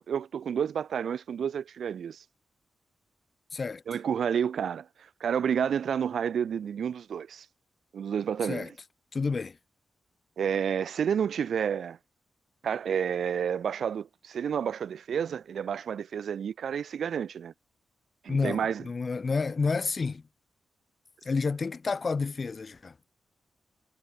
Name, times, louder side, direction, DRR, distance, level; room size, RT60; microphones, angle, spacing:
voice 1, 0.0-2.2 3.9-4.9 5.2-7.5 7.9-8.7 10.4-12.0 12.6-17.5 18.2-18.8, right 8 dB, 70° right, 0.4 m, -30 dB
voice 2, 3.5-3.8 8.5-8.7 9.1-9.6 18.3-20.2 21.2-22.9, left 4 dB, 35° left, 0.8 m, -30 dB
wide cardioid pair, 145°, 0 cm